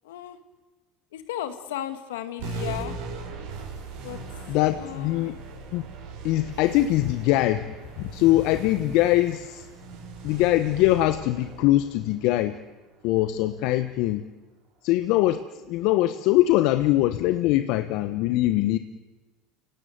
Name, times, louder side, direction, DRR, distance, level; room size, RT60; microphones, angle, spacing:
voice 1, 0.0-0.4 1.1-3.0 4.0-4.2 4.7-5.4, left 11 dB, 80° left, 9 dB, 2.1 m, -35 dB
sound 1, 2.4-13.3, right 3 dB, 75° right, 7.8 m, -39 dB
voice 2, 4.5-5.3 5.7-5.8 6.2-7.7 8.0-9.7 10.2-12.6 13.0-14.2 14.8-18.8, left 15 dB, 65° left, 10 dB, 1.0 m, -22 dB
29.0 x 17.0 x 9.4 m, 1.2 s
hypercardioid pair, 85°, 0 cm